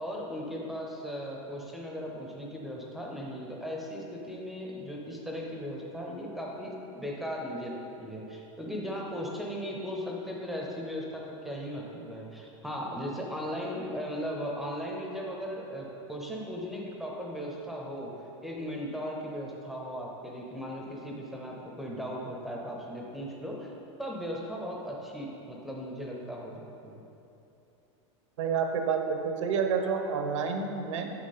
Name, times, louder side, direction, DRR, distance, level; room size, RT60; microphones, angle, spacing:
voice 1, 0.0-18.1 18.4-23.7 24.0-26.9, equal, ahead, -2 dB, 0.6 m, -37 dB
voice 2, 28.4-31.1, right 6 dB, 80° right, 5 dB, 1.0 m, -29 dB
9.8 x 7.0 x 4.2 m, 2.8 s
supercardioid pair, 180°, 16 cm